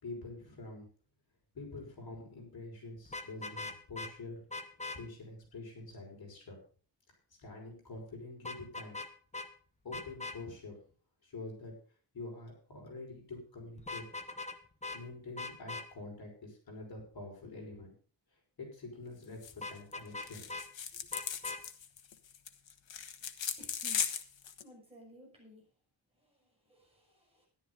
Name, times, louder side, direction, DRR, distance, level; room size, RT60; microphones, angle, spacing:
voice 1, 0.0-0.9 1.5-4.6 4.9-6.6 7.4-9.0 9.8-10.8 11.2-11.7 12.1-14.0 14.9-17.9 18.6-20.5, left 2 dB, 55° left, -1 dB, 5.6 m, -46 dB
Vehicle horn car horn honking, 3.1-4.1 4.5-5.0 8.4-9.1 9.3-9.5 9.9-10.4 13.8-14.6 14.8-15.0 15.4-15.9 19.6-20.7 21.1-21.6, left 3 dB, 15° left, 1.0 m, -41 dB
sound 1, 19.4-19.6 19.9-20.0 20.2-24.6, left 8 dB, 85° left, 1.3 m, -37 dB
voice 2, 23.6-24.0 24.6-25.6 26.1-27.5, left 1 dB, 15° right, -2 dB, 6.0 m, -57 dB
14.0 x 11.5 x 3.9 m, 0.40 s
wide cardioid pair, 180°, 44 cm